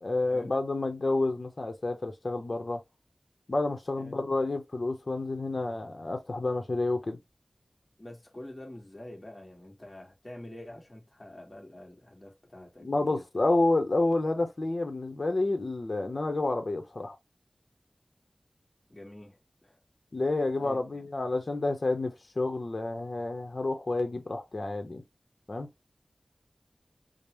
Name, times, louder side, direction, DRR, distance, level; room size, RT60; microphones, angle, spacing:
voice 1, 0.0-2.8 3.5-7.2 12.8-17.2 20.1-25.0 25.5-25.7, left 2 dB, 60° left, 0.8 m, -29 dB
voice 2, 8.0-13.5 18.9-19.8 20.6-21.1, left 1 dB, 35° left, 1.4 m, -47 dB
5.1 x 2.1 x 2.9 m
wide cardioid pair, 45°, 0 cm